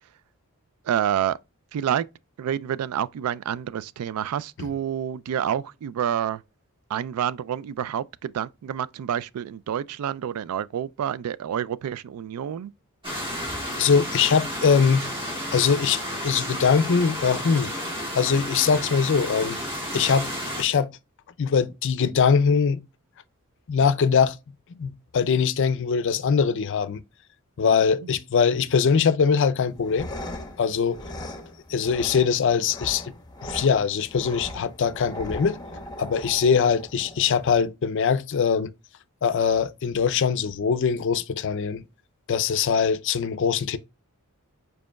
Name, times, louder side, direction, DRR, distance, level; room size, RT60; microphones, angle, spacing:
voice 1, 0.9-1.4 1.7-2.1 2.4-6.4 6.9-12.7 27.6-27.8, right 9 dB, 85° right, 0.3 m, -28 dB
sound 1, 13.0-20.6, equal, 25° right, 1.5 m, -32 dB
voice 2, 13.8-15.1 15.5-17.7 18.1-19.6 19.9-20.3 20.6-20.9 21.4-22.8 23.7-24.4 24.7-27.0 27.6-30.1 30.6-31.0 31.7-33.1 33.4-35.6 36.0-38.7 39.2-41.8 42.3-43.8, left 6 dB, 55° left, 0.4 m, -22 dB
sound 2, 29.7-37.7, left 1 dB, 20° left, 0.8 m, -39 dB
5.1 x 4.6 x 2.2 m
head